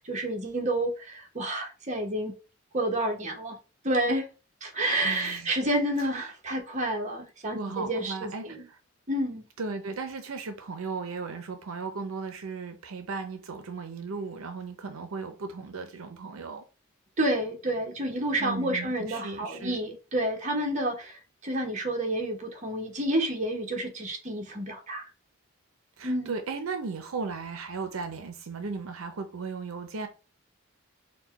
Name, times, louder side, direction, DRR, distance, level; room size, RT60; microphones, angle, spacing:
voice 1, 0.0-2.3 2.7-3.6 3.8-4.3 4.6-8.7 9.1-9.4 17.2-25.1 26.0-26.4, right 1 dB, 35° right, 1.0 m, -29 dB
voice 2, 5.0-5.5 6.1-6.3 7.5-8.8 9.6-16.6 18.4-19.8 26.0-30.1, right 4 dB, 80° right, 0.6 m, -36 dB
4.5 x 2.2 x 4.0 m
head